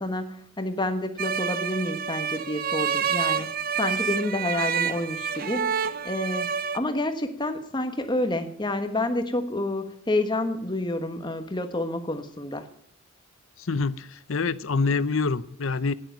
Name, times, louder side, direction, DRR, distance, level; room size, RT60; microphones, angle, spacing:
voice 1, 0.0-3.5 3.8-12.7, left 1 dB, 20° left, 1.2 m, -29 dB
sound 1, 1.2-6.8, right 7 dB, 40° right, 0.6 m, -28 dB
voice 2, 13.6-15.9, left 4 dB, 65° left, 0.6 m, -26 dB
11.5 x 9.9 x 9.1 m
head